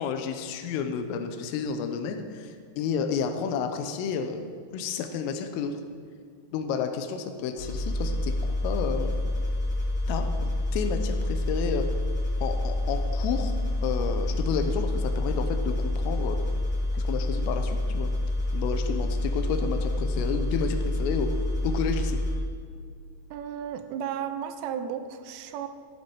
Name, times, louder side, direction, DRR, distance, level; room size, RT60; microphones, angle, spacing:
voice 1, 0.0-5.8 6.5-9.2 10.1-11.9 12.4-13.5 13.8-16.4 16.9-18.1 18.5-21.3 21.6-22.2, left 6 dB, 85° left, 7 dB, 3.5 m, -31 dB
sound 1, 7.6-22.3, left 1 dB, 35° left, 2.5 m, -28 dB
voice 2, 23.3-25.7, right 8 dB, 85° right, 9 dB, 3.2 m, -34 dB
14.5 x 10.5 x 4.6 m, 2.2 s
omnidirectional pair, 5.8 m